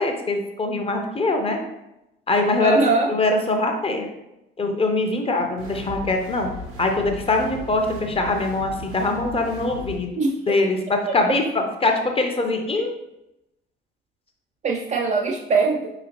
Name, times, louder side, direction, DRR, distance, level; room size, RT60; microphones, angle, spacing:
voice 1, 0.0-1.6 2.3-2.8 3.1-4.1 4.6-6.5 6.8-10.1 10.5-12.9, left 2 dB, 20° left, 4 dB, 0.6 m, -22 dB
voice 2, 2.6-3.1 10.2-10.6 11.1-11.2 14.6-15.9, right 4 dB, 25° right, 0 dB, 0.4 m, -22 dB
sound 1, 5.6-10.0, equal, 80° right, 1.0 m, -37 dB
4.7 x 2.9 x 2.9 m, 0.88 s
figure-of-eight pair, 50°, 30 cm